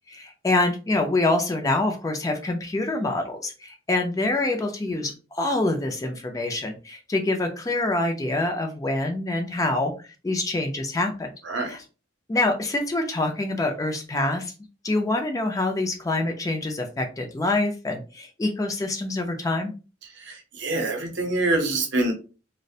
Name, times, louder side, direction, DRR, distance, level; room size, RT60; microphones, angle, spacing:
voice 1, 0.1-9.9 10.2-11.3 11.7-11.8 12.3-14.5 14.8-19.7, left 2 dB, 20° left, 0.3 m, -26 dB
voice 2, 20.2-22.1, right 2 dB, 65° right, 0.7 m, -25 dB
2.3 x 2.0 x 2.7 m
head